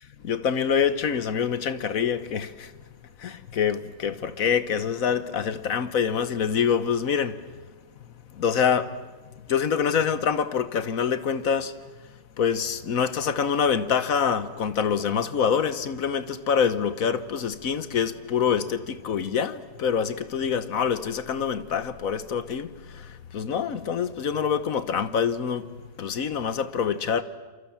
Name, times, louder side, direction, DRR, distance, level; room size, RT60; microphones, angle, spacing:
voice 1, 0.2-2.7 3.2-7.4 8.3-9.0 9.5-11.7 12.4-25.7 26.0-27.2, left 7 dB, 55° left, 1.3 m, -25 dB
28.0 x 27.5 x 7.3 m
omnidirectional pair, 1.8 m